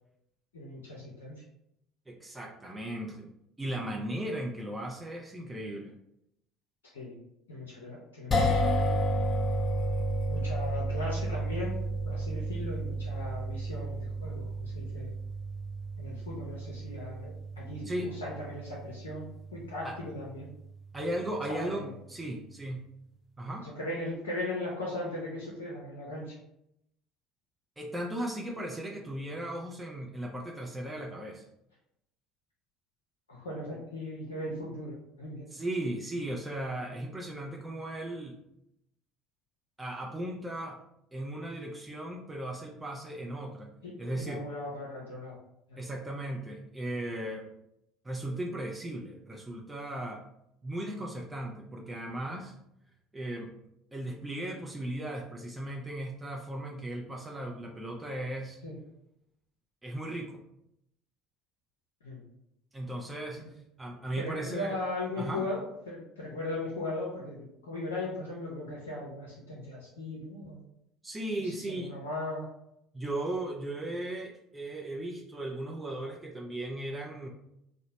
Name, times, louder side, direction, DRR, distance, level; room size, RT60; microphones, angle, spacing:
voice 1, 0.5-1.4 6.9-7.2 7.5-8.9 10.3-11.8 12.0-15.1 16.0-19.3 19.5-20.5 21.5-21.9 23.6-26.4 33.3-35.5 43.8-45.4 45.7-45.8 58.6-58.8 62.0-62.2 63.4-63.5 64.2-70.6 71.4-72.5, left 2 dB, 85° left, -5 dB, 0.5 m, -38 dB
voice 2, 2.1-3.3 3.6-6.0 17.8-18.1 19.8-20.0 20.9-22.9 23.4-23.7 27.8-31.4 35.5-38.4 39.8-40.8 41.1-43.7 44.0-44.4 45.8-47.5 48.0-50.2 50.6-52.5 53.1-53.5 53.9-58.6 59.8-60.4 62.7-63.4 63.8-64.8 65.2-65.4 71.0-71.9 72.9-77.3, right 1 dB, 15° right, -1 dB, 0.4 m, -36 dB
sound 1, 8.3-20.6, right 1 dB, 30° left, 0.6 m, -32 dB
2.8 x 2.0 x 2.8 m, 0.78 s
hypercardioid pair, 65°, 0 cm